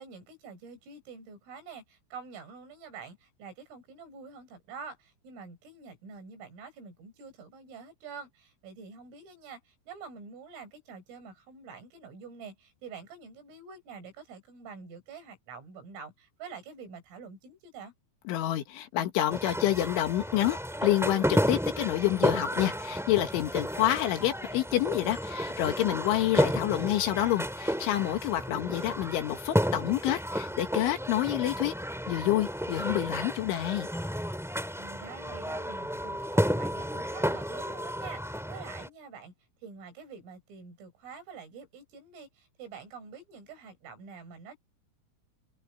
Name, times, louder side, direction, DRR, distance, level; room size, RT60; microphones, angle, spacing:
voice 1, 0.0-17.9 34.8-39.3 39.6-44.6, right 5 dB, 75° right, 9.2 m, -46 dB
voice 2, 18.3-31.7 32.1-33.9, left 14 dB, 75° left, 3.9 m, -28 dB
sound 1, 19.3-38.9, equal, ahead, 1.6 m, -32 dB
open air
omnidirectional pair, 5.8 m